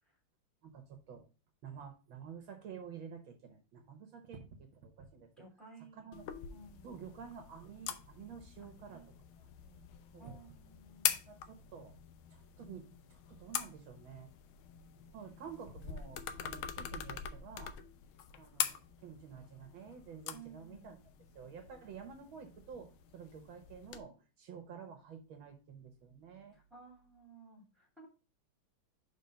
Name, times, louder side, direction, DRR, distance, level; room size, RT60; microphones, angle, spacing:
voice 1, 0.6-1.3 1.6-5.5 5.9-6.3 6.8-9.0 9.4-9.5 10.1-10.4 11.3-12.0 12.3-12.8 13.1-14.3 15.1-17.8 18.4-21.0 21.3-26.6, right 7 dB, 70° right, 5 dB, 1.7 m, -50 dB
voice 2, 5.4-6.1 6.5-7.0 8.6-9.1 9.6-9.9 10.2-11.2 15.3-15.4 20.3-21.0 26.5-28.1, right 4 dB, ahead, 1 dB, 2.8 m, -56 dB
sound 1, 6.1-24.0, left 10 dB, 80° left, 1.5 m, -43 dB
5.4 x 4.2 x 5.6 m, 0.33 s
omnidirectional pair, 2.3 m